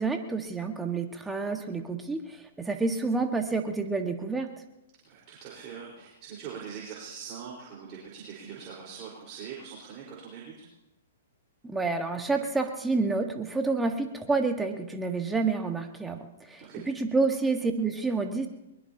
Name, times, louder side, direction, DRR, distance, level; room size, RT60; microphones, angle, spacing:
voice 1, 0.0-4.5 11.6-18.5, right 3 dB, 10° right, 5 dB, 1.6 m, -29 dB
voice 2, 5.0-10.6 16.6-16.8, right 7 dB, 40° right, -4 dB, 4.6 m, -42 dB
22.5 x 21.0 x 2.9 m, 0.92 s
hypercardioid pair, 120°, 0 cm